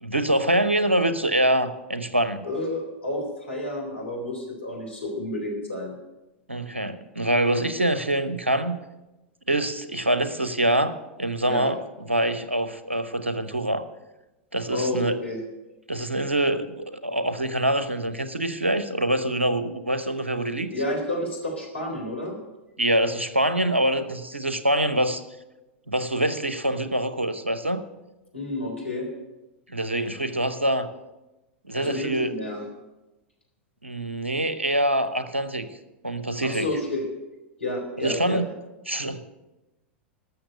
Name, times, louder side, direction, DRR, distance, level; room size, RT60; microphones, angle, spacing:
voice 1, 0.0-2.4 6.5-8.8 9.5-10.9 11.2-11.8 12.1-13.8 14.5-15.1 15.9-20.7 22.8-25.2 25.9-27.8 29.7-30.9 31.7-32.3 33.8-35.7 36.0-36.7 38.0-38.4 38.9-39.2, right 1 dB, 85° right, 11 dB, 0.9 m, -25 dB
voice 2, 2.4-5.9 11.4-11.7 14.7-15.4 20.7-22.4 28.3-29.1 31.8-32.6 36.4-37.0 37.6-38.4, left 1 dB, 80° left, 1 dB, 3.7 m, -30 dB
13.0 x 6.8 x 8.2 m, 1.0 s
figure-of-eight pair, 90°, 6 cm